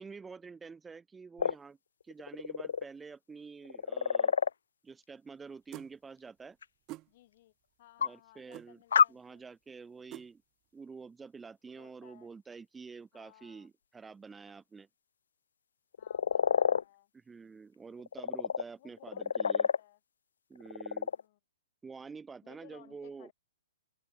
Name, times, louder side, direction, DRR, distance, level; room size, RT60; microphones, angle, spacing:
voice 1, 0.0-1.8 2.0-4.4 4.8-6.6 8.0-8.8 9.1-10.4 10.7-14.9 17.1-19.7 20.5-21.1 21.8-23.3, right 5 dB, 10° right, 1.9 m, -48 dB
sound 1, 1.4-1.5 2.1-2.8 3.7-4.5 6.6-6.7 8.0-8.1 8.9-9.1 15.9-16.8 18.0-18.6 19.0-19.8 20.6-21.2, left 7 dB, 85° left, 0.3 m, -28 dB
sound 2, 5.7-5.9 6.9-7.1 8.5-8.7 10.1-10.3, right 20 dB, 25° right, 1.0 m, -44 dB
voice 2, 7.1-7.5 7.8-9.4 11.7-12.3 13.1-13.7 16.0-17.1 18.1-20.0 20.8-21.4 22.4-23.3, left 15 dB, 45° left, 3.6 m, -60 dB
open air
hypercardioid pair, 160°, 0 cm